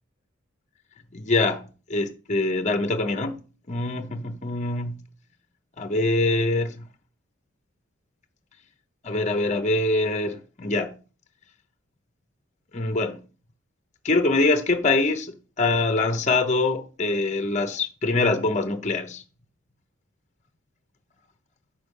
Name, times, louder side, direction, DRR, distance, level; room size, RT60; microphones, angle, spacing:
voice 1, 1.2-1.6 1.9-3.3 3.7-4.9 5.8-6.9 9.0-10.9 12.7-13.2 14.0-19.2, left 2 dB, 35° left, 0.9 m, -24 dB
7.1 x 6.1 x 5.4 m
head